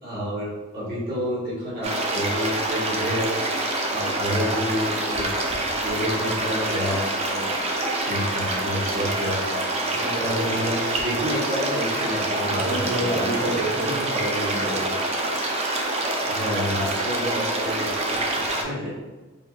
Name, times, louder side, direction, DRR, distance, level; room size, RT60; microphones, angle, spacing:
voice 1, 0.0-3.3 3.9-5.3 5.8-7.5 8.0-9.5 10.2-13.2 16.2-18.9, equal, 50° right, -8 dB, 1.5 m, -29 dB
sound 1, 1.8-18.6, right 2 dB, 30° right, 0.5 m, -26 dB
voice 2, 9.9-10.2 12.4-14.9, right 1 dB, 90° right, -8 dB, 1.1 m, -28 dB
3.8 x 3.5 x 2.4 m, 1.2 s
head